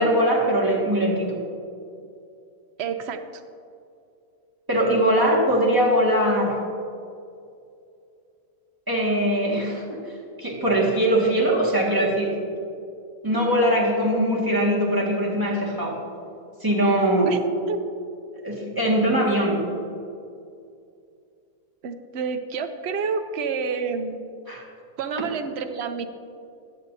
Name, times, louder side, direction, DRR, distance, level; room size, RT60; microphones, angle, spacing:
voice 1, 0.0-1.4 4.7-6.6 8.9-10.0 10.4-12.3 13.2-16.0 16.6-17.3 18.4-19.6 24.5-24.6, right 1 dB, 15° right, -5 dB, 1.8 m, -21 dB
voice 2, 2.8-3.2 17.3-17.4 17.7-17.8 21.8-24.3 25.0-26.1, right 5 dB, 55° right, 7 dB, 0.7 m, -28 dB
15.0 x 10.5 x 2.7 m, 2.5 s
omnidirectional pair, 1.7 m